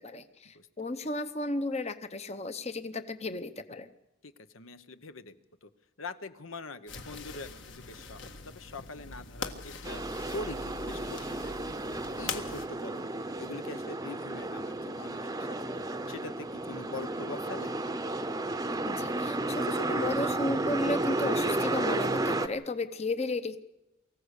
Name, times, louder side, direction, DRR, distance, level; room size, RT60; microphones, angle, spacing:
voice 1, 0.0-3.9 18.8-23.6, left 2 dB, 30° left, 10 dB, 0.8 m, -34 dB
voice 2, 4.2-5.4 5.6-5.7 6.0-10.0 10.3-11.5 12.2-15.5 16.1-17.7, left 2 dB, 80° left, 10 dB, 1.1 m, -43 dB
sound 1, 6.9-12.7, left 4 dB, 60° left, 1.8 m, -42 dB
sound 2, 9.8-22.5, right 2 dB, 15° right, 0.8 m, -32 dB
24.0 x 15.0 x 8.3 m, 0.95 s
head